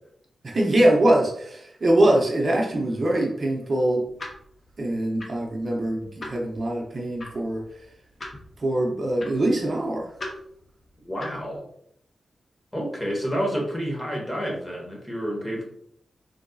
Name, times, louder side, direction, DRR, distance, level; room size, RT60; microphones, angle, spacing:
voice 1, 0.4-4.0 4.8-7.6 8.6-10.1, right 1 dB, 45° right, -1 dB, 0.6 m, -23 dB
sound 1, 4.0-11.6, left 2 dB, 40° left, 0.7 m, -43 dB
voice 2, 11.0-11.7 12.7-15.6, equal, 15° left, -2 dB, 1.0 m, -29 dB
3.9 x 2.5 x 2.3 m, 0.68 s
wide cardioid pair, 110°, 0 cm